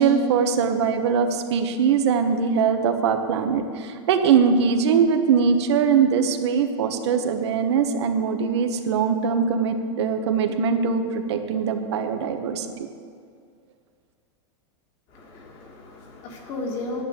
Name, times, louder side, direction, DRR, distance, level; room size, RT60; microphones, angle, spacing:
voice 1, 0.0-12.7, right 6 dB, 70° right, 6 dB, 1.2 m, -21 dB
voice 2, 15.1-17.0, left 2 dB, 35° left, 1 dB, 2.0 m, -34 dB
10.5 x 10.0 x 8.0 m, 2.2 s
supercardioid pair, 175°, 15 cm